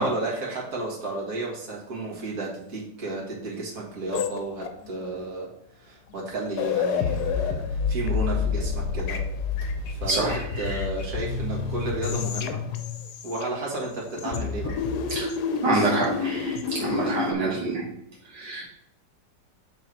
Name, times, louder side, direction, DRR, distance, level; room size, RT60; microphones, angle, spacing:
voice 1, 0.0-9.2 9.9-12.6 13.2-14.8 15.6-15.9, right 2 dB, 50° right, -4 dB, 2.1 m, -32 dB
sound 1, 4.1-5.0 6.1-6.2 6.5-13.8 14.2-17.3, left 6 dB, 70° left, 1.1 m, -29 dB
voice 2, 10.1-10.4 15.1-15.3 15.6-17.9 18.3-18.6, right 3 dB, 70° right, -4 dB, 2.0 m, -26 dB
7.0 x 4.0 x 4.5 m, 0.77 s
omnidirectional pair, 2.0 m